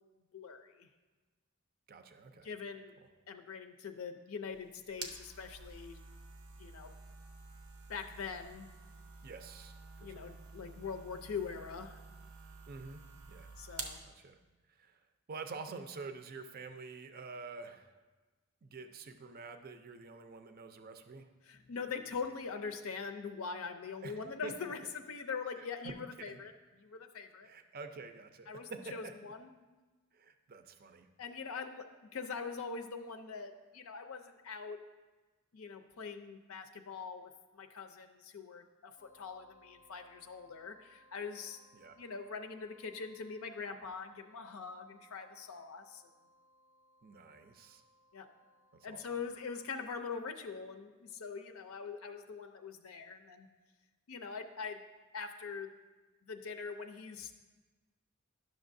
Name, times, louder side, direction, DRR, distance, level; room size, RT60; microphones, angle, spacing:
voice 1, 0.3-0.9 2.4-2.9 3.3-6.0 6.6-6.9 7.9-8.7 10.0-12.0 13.6-14.0 21.4-26.5 26.8-27.5 28.5-29.5 31.2-31.8 32.1-34.8 35.5-41.6 42.0-46.0 48.1-48.3 48.8-53.5 54.1-54.8 55.1-55.7 56.2-57.4, left 5 dB, 75° left, 7 dB, 0.5 m, -43 dB
voice 2, 1.9-2.5 9.2-10.3 10.8-10.9 12.7-13.0 13.3-13.5 14.0-14.4 14.7-15.0 15.3-18.0 18.6-21.3 24.0-24.7 25.6-26.4 27.4-29.3 30.1-31.1 41.7-42.0 47.0-47.8 48.7-49.2, right 4 dB, 45° right, 8 dB, 0.5 m, -48 dB
sound 1, 4.4-14.0, right 4 dB, 85° right, 0.7 m, -50 dB
sound 2, 39.0-49.8, equal, 20° left, 0.5 m, -67 dB
10.5 x 6.3 x 2.6 m, 1.3 s
head